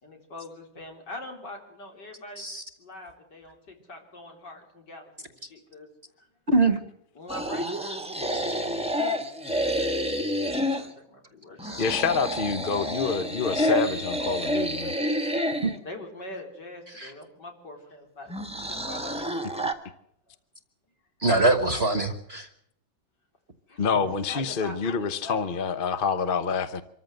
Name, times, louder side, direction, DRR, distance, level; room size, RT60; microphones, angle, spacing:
voice 1, 0.0-2.4 2.8-5.1 5.4-5.9 6.2-6.3 7.2-8.0 10.6-12.4 15.8-19.5 23.7-25.6, left 1 dB, 60° left, 2 dB, 4.5 m, -43 dB
voice 2, 6.5-6.8 8.3-8.4 11.6-11.8 15.6-15.7 16.9-17.1 21.2-22.5, right 2 dB, 35° right, 9 dB, 1.3 m, -23 dB
sound 1, 7.3-10.9 11.6-15.8 18.3-19.7, equal, 5° right, 1.3 m, -29 dB
voice 3, 11.8-14.9 23.8-26.8, left 5 dB, 45° left, 11 dB, 0.7 m, -27 dB
25.5 x 14.5 x 7.8 m, 0.76 s
omnidirectional pair, 2.1 m